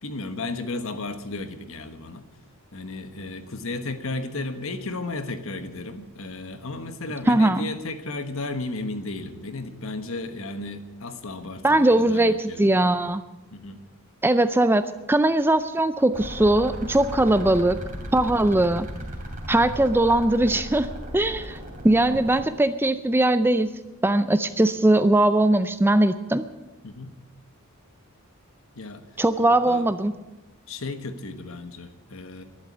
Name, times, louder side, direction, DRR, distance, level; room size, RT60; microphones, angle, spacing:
voice 1, 0.0-2.3 2.7-12.8 13.5-13.8 19.5-19.7 26.8-27.1 28.7-29.0 29.4-29.9 30.7-32.4, left 2 dB, 65° left, 9 dB, 1.3 m, -34 dB
voice 2, 7.3-7.7 11.6-13.2 14.2-17.8 18.1-18.9 19.5-21.6 21.8-23.7 24.0-26.4 29.2-30.1, right 1 dB, 10° right, 12 dB, 0.4 m, -20 dB
sound 1, 16.1-22.4, equal, 40° right, 2.8 m, -36 dB
11.5 x 11.5 x 8.8 m, 1.1 s
head